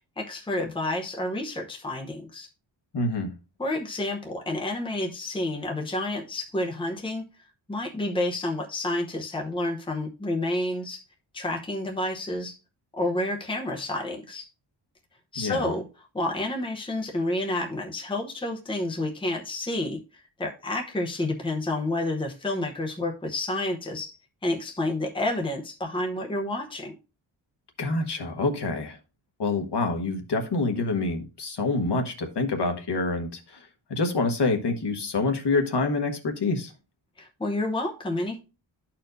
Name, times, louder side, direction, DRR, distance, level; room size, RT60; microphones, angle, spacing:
voice 1, 0.2-2.5 3.6-7.2 7.7-11.0 11.3-12.6 12.9-14.5 15.3-20.0 20.4-24.2 24.4-26.9 37.2-38.4, left 1 dB, 10° left, 0.8 m, -29 dB
voice 2, 2.9-3.3 15.4-15.7 27.8-29.0 29.4-33.6 33.9-36.7, left 3 dB, 60° left, 1.3 m, -26 dB
12.5 x 4.4 x 2.6 m
wide cardioid pair, 155°, 46 cm